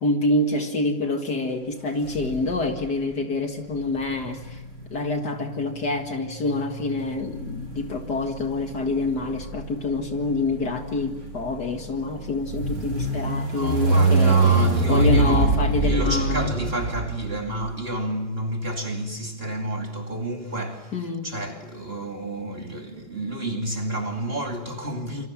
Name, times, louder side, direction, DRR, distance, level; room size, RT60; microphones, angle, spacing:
voice 1, 0.0-4.6 4.9-16.5 20.9-21.3, left 2 dB, 50° left, 2.2 m, -27 dB
sound 1, 2.0-2.8 3.8-17.5, right 2 dB, 70° right, 8.0 m, -25 dB
voice 2, 13.5-15.6 15.8-25.3, right 1 dB, 25° right, 2.6 m, -30 dB
27.5 x 25.5 x 7.3 m
omnidirectional pair, 2.4 m